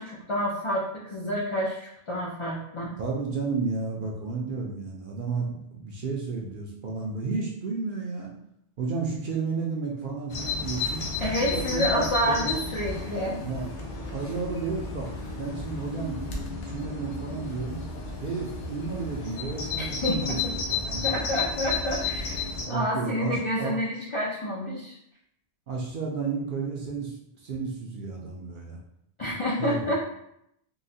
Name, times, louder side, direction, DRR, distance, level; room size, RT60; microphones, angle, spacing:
voice 1, 0.0-2.9 11.2-13.4 19.8-20.5 21.0-25.0 29.2-29.9, equal, 55° left, -4 dB, 0.3 m, -29 dB
voice 2, 3.0-8.3 8.8-11.0 11.4-12.5 13.4-13.7 14.1-15.1 15.3-17.9 18.2-21.3 22.6-23.7 25.7-28.8 29.6-30.0, right 4 dB, 60° right, -2 dB, 0.6 m, -32 dB
Bird vocalization bird call bird song, 10.3-22.6, left 4 dB, 90° left, 1.0 m, -32 dB
3.8 x 2.0 x 2.6 m, 0.76 s
omnidirectional pair, 1.2 m